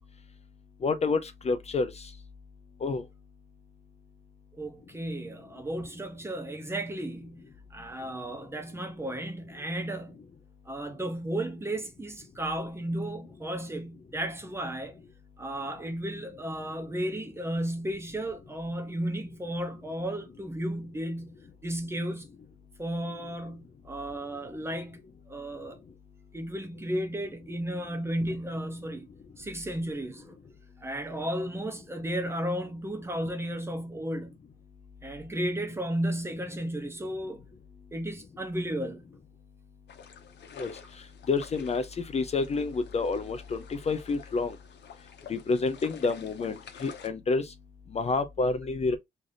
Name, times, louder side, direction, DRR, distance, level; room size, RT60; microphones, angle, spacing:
voice 1, 0.8-1.9 2.8-3.0 40.6-40.7 41.3-41.9 42.1-44.5 45.3-47.5 47.9-49.0, left 4 dB, 35° left, 0.5 m, -28 dB
voice 2, 4.5-7.4 7.7-10.2 10.7-15.0 15.4-21.3 21.6-22.3 22.8-25.0 25.3-25.8 26.3-29.1 29.4-30.4 30.8-34.4 35.0-37.4 37.9-39.0, right 1 dB, 15° right, 0.7 m, -34 dB
sound 1, 39.9-47.1, left 7 dB, 85° left, 0.8 m, -50 dB
3.2 x 2.5 x 4.0 m
wide cardioid pair, 160°, 18 cm